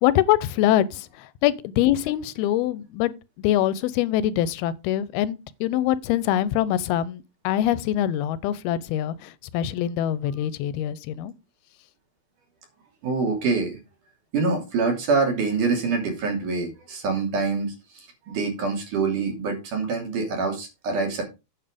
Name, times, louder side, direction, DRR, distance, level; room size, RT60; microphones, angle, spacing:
voice 1, 0.0-3.1 3.4-11.3, left 12 dB, 85° left, 2.6 m, -24 dB
voice 2, 13.0-13.8 14.3-21.2, right 4 dB, 55° right, 4.3 m, -25 dB
8.9 x 7.1 x 5.0 m
omnidirectional pair, 4.4 m